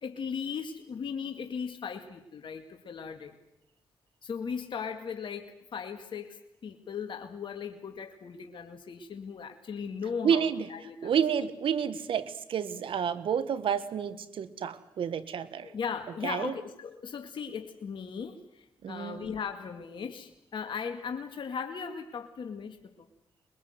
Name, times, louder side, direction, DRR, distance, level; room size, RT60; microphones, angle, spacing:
voice 1, 0.0-3.4 4.2-11.2 15.6-23.1, left 6 dB, 65° left, 5 dB, 2.1 m, -38 dB
voice 2, 10.2-10.7 11.0-15.7 16.2-16.5 18.8-19.3, right 8 dB, 75° right, 13 dB, 1.6 m, -30 dB
25.0 x 21.5 x 8.1 m, 0.83 s
supercardioid pair, 55°, 9 cm